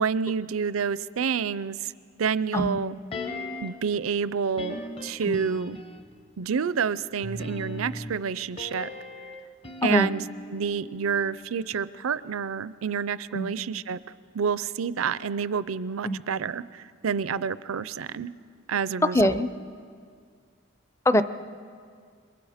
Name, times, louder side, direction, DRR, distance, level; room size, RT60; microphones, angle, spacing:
voice 1, 0.0-1.9 2.2-2.9 3.6-5.8 6.4-8.9 9.8-10.2 10.5-14.0 14.3-18.3 18.7-19.4, right 6 dB, 85° right, 17 dB, 0.5 m, -28 dB
sound 1, 3.1-3.9 4.6-6.2 7.2-11.4 11.7-11.8, left 2 dB, 30° left, 0.8 m, -38 dB
voice 2, 9.8-10.1 13.3-13.5 16.0-16.2 19.1-19.5 21.0-21.2, left 1 dB, 15° left, 13 dB, 0.5 m, -23 dB
28.0 x 23.0 x 5.0 m, 2.1 s
head